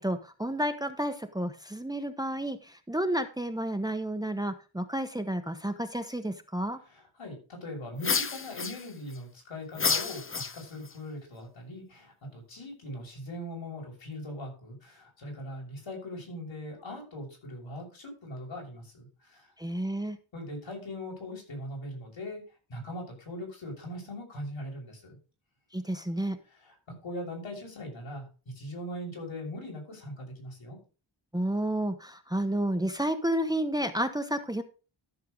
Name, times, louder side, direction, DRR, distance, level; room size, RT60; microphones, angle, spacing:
voice 1, 0.0-6.8 19.6-20.2 25.7-26.4 31.3-34.6, right 1 dB, 10° right, 8 dB, 1.1 m, -31 dB
voice 2, 6.8-19.5 20.3-22.4 22.7-25.2 26.5-30.8, left 1 dB, 75° left, 0 dB, 6.4 m, -40 dB
sound 1, 8.0-9.2 9.7-10.9, left 5 dB, 25° left, 0.8 m, -30 dB
13.5 x 6.6 x 3.8 m, 0.33 s
wide cardioid pair, 90°, 47 cm